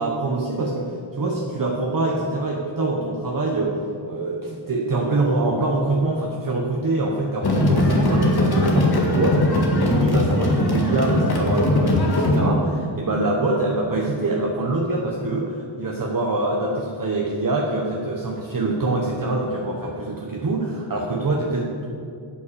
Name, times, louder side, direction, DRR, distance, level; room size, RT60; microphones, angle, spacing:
voice 1, 0.0-3.8 4.0-21.8, right 2 dB, 40° right, -1 dB, 1.1 m, -24 dB
sound 1, 7.4-12.4, left 1 dB, 50° left, 1.9 m, -20 dB
8.5 x 8.4 x 6.9 m, 2.5 s
wide cardioid pair, 125°, 50 cm